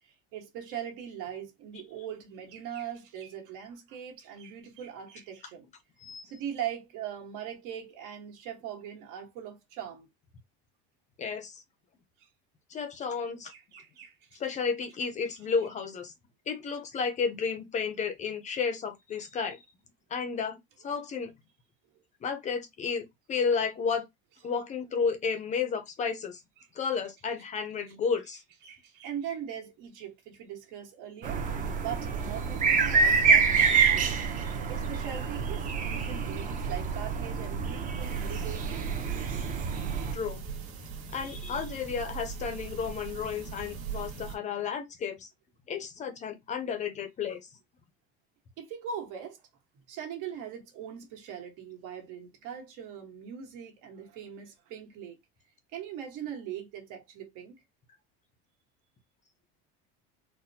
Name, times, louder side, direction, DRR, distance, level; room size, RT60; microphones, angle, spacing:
voice 1, 0.0-5.7 6.2-10.1 12.2-12.3 13.5-14.4 15.3-15.4 26.6-26.7 28.6-31.4 31.8-34.1 34.7-39.5 48.6-49.4 49.9-55.2 55.7-57.6, right 9 dB, 70° right, 1.4 m, -41 dB
voice 2, 11.2-11.6 12.7-13.5 14.4-16.1 16.5-19.6 20.1-21.3 22.2-24.1 24.4-26.4 26.7-28.4 40.1-40.4 41.1-45.3 45.7-47.5, left 5 dB, 25° left, 0.5 m, -32 dB
sound 1, 31.2-40.1, right 5 dB, 25° right, 0.6 m, -27 dB
sound 2, 38.0-44.4, right 6 dB, 50° right, 1.5 m, -40 dB
4.1 x 2.1 x 2.7 m
cardioid pair, 155°, 30 cm